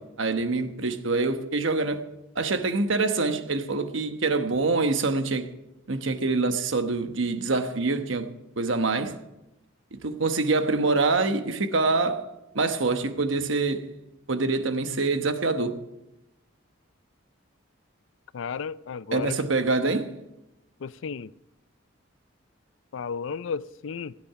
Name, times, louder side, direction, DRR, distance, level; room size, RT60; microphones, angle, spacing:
voice 1, 0.0-2.1 2.3-5.5 5.9-9.2 9.9-13.9 14.3-15.8 19.1-20.1, right 3 dB, 70° right, 1.1 m, -25 dB
voice 2, 18.3-19.4 20.8-21.3 22.9-24.1, left 5 dB, 70° left, 0.4 m, -33 dB
16.5 x 9.5 x 5.7 m
head